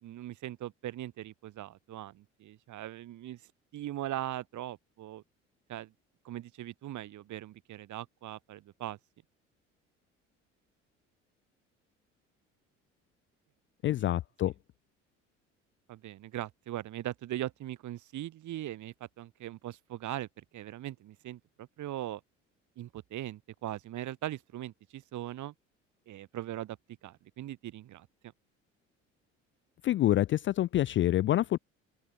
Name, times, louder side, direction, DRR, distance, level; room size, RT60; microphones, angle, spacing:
voice 1, 0.0-3.4 3.7-5.2 5.7-5.9 6.3-9.0 13.8-13.9 15.9-22.2 22.8-25.5 26.1-26.8 27.0-28.1, right 13 dB, 50° right, 3.4 m, -40 dB
voice 2, 13.8-14.5 29.8-31.6, left 13 dB, 35° left, 0.4 m, -27 dB
open air
figure-of-eight pair, 55°, 37 cm